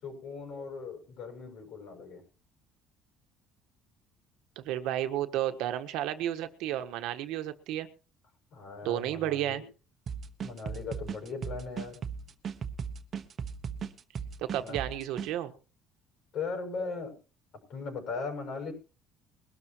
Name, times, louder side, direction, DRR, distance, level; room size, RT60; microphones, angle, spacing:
voice 1, 0.0-2.2 8.5-9.6 10.4-12.0 14.6-14.8 16.3-17.2 17.7-18.7, left 4 dB, 55° left, 4 dB, 7.1 m, -38 dB
voice 2, 4.5-7.9 8.8-9.6 14.4-15.5, right 12 dB, 80° right, 9 dB, 1.4 m, -32 dB
sound 1, 10.1-15.3, right 7 dB, 40° right, 1.2 m, -37 dB
22.0 x 12.5 x 3.1 m, 0.35 s
cardioid pair, 140°, 0 cm